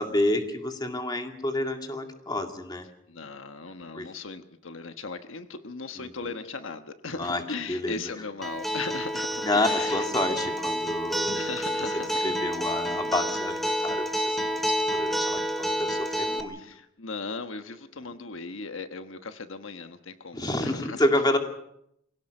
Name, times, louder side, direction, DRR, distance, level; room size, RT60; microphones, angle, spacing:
voice 1, 0.0-2.9 3.9-4.1 6.0-6.3 7.2-7.4 7.7-8.0 9.4-11.4 12.2-16.6 20.3-21.4, left 1 dB, 20° left, 5 dB, 2.2 m, -29 dB
voice 2, 3.1-10.1 11.3-12.3 16.5-21.0, left 4 dB, 75° left, 8 dB, 1.2 m, -38 dB
Acoustic guitar, 8.4-16.4, equal, ahead, 2.3 m, -29 dB
25.0 x 17.0 x 6.6 m, 0.76 s
head